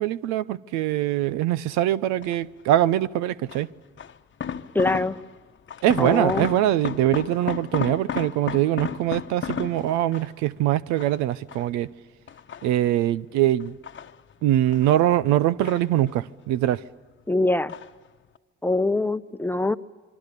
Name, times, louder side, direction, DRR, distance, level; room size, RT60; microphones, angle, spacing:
voice 1, 0.0-3.7 5.8-11.9 12.6-13.8 14.4-16.8, right 13 dB, 75° right, 0.7 m, -23 dB
sound 1, 2.2-2.6 3.5-5.4 5.7-10.5 11.0-11.9 12.3-13.1 13.6-15.0 15.2-16.4 16.7-17.3 17.7-18.1 18.4-18.5, left 8 dB, 40° left, 1.1 m, -34 dB
voice 2, 4.7-5.2 6.0-6.5 17.3-17.7 18.6-19.8, left 2 dB, 5° left, 0.9 m, -23 dB
26.5 x 23.5 x 6.8 m
hypercardioid pair, 60°, 29 cm